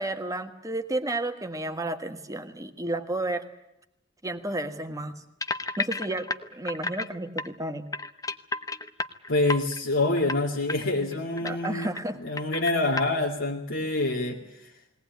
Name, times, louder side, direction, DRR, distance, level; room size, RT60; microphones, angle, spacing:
voice 1, 0.0-3.4 4.2-5.2 5.8-7.9 11.4-12.2, right 2 dB, 15° right, 7 dB, 1.4 m, -32 dB
sound 1, 5.4-7.1 7.4-7.5 7.9-9.8 10.2-10.4 10.7-10.8 11.1-12.1 12.4-13.1, left 3 dB, 20° left, 0.8 m, -32 dB
voice 2, 9.3-11.9 12.2-14.4, left 2 dB, 80° left, -2 dB, 2.3 m, -26 dB
21.0 x 18.5 x 9.3 m, 0.82 s
head